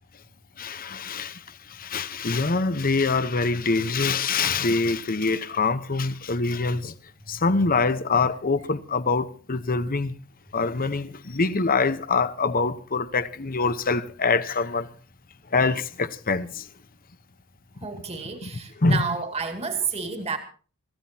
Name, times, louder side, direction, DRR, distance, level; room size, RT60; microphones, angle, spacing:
voice 1, 0.6-6.9 7.3-10.1 10.5-14.9 15.5-16.7 17.9-18.0 18.4-18.5 18.8-19.0, left 4 dB, 40° left, 1.0 m, -24 dB
voice 2, 17.8-20.4, right 5 dB, 30° right, 2.3 m, -30 dB
26.0 x 15.5 x 2.8 m
head